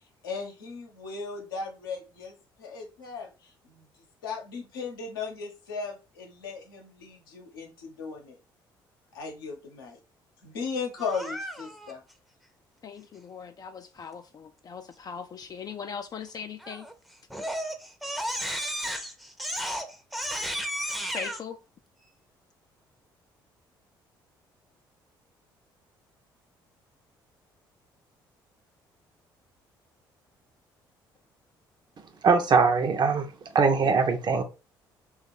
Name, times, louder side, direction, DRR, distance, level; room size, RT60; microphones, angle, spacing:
voice 1, 0.2-3.9 4.2-8.4 9.1-10.0 10.4-12.0, left 5 dB, 80° left, 0.7 m, -37 dB
Crying sobbing, 11.0-11.9 16.6-16.9 17.3-21.4, equal, ahead, 0.6 m, -33 dB
voice 2, 12.8-16.9 21.1-21.6, left 6 dB, 35° left, 0.3 m, -40 dB
voice 3, 32.2-33.3 33.5-34.4, right 5 dB, 40° right, 0.7 m, -21 dB
3.0 x 2.3 x 4.2 m
figure-of-eight pair, 50°, 12 cm